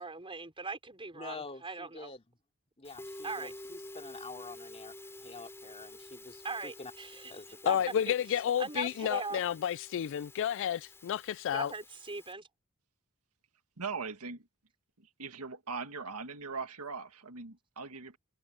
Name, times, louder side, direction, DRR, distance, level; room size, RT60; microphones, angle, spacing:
voice 1, 0.0-2.1 3.2-3.5 6.4-7.3 7.7-7.8 8.1-8.2 8.6-9.4 11.5-12.5, right 4 dB, 25° right, 5.0 m, -40 dB
voice 2, 1.1-2.2 2.8-6.9 7.3-7.8, left 3 dB, 25° left, 3.1 m, -47 dB
Musical instrument, 2.8-12.3, left 1 dB, 10° left, 3.9 m, -50 dB
voice 3, 7.7-11.7, left 9 dB, 60° left, 0.3 m, -31 dB
voice 4, 13.8-14.5 15.0-18.2, right 4 dB, 90° right, 1.9 m, -40 dB
head